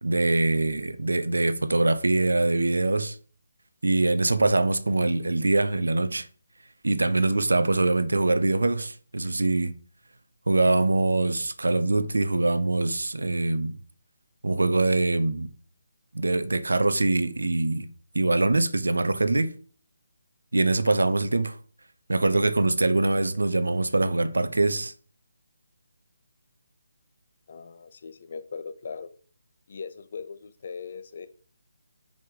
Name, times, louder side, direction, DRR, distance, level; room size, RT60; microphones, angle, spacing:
voice 1, 0.0-3.2 3.8-6.3 6.8-9.7 10.5-13.8 14.4-15.5 16.1-17.9 18.1-19.5 20.5-21.6 22.1-24.9, right 2 dB, 70° right, 0.7 m, -23 dB
voice 2, 27.5-29.1 29.7-31.3, left 5 dB, 40° left, 0.7 m, -39 dB
5.4 x 5.1 x 5.3 m
figure-of-eight pair, 145°, 0 cm